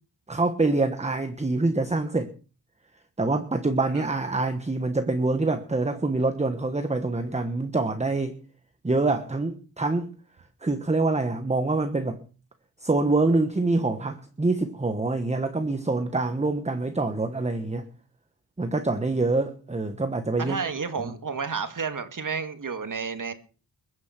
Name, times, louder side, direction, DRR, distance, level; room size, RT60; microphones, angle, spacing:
voice 1, 0.3-2.3 3.2-8.4 8.8-10.1 10.6-12.2 12.8-17.8 18.6-20.6 21.0-21.1, right 3 dB, 15° right, 1.3 m, -25 dB
voice 2, 20.4-23.3, right 5 dB, 50° right, 2.2 m, -31 dB
22.0 x 9.6 x 5.9 m
wide cardioid pair, 145°, 42 cm